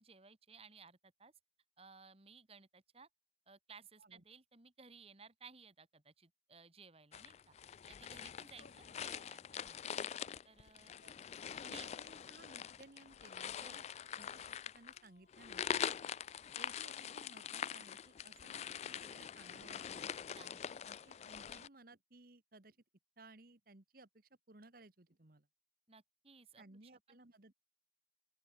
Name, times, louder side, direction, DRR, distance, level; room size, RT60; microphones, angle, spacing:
voice 1, 0.0-1.3 1.8-3.1 3.5-7.5 7.9-9.9 10.4-10.9 11.7-11.9 13.6-13.8 20.3-20.7 25.9-26.6 26.9-27.2, right 5 dB, 35° right, 1.8 m, -59 dB
sound 1, 7.1-21.7, left 8 dB, 35° left, 0.3 m, -44 dB
sound 2, 8.5-9.1 9.5-10.2 10.8-11.7 12.4-13.4 14.8-16.2, left 2 dB, 60° left, 7.5 m, -72 dB
voice 2, 11.6-13.9 14.2-15.9 16.6-20.1 20.8-22.8 23.2-25.5 26.6-27.6, right 2 dB, 55° right, 1.6 m, -60 dB
open air
head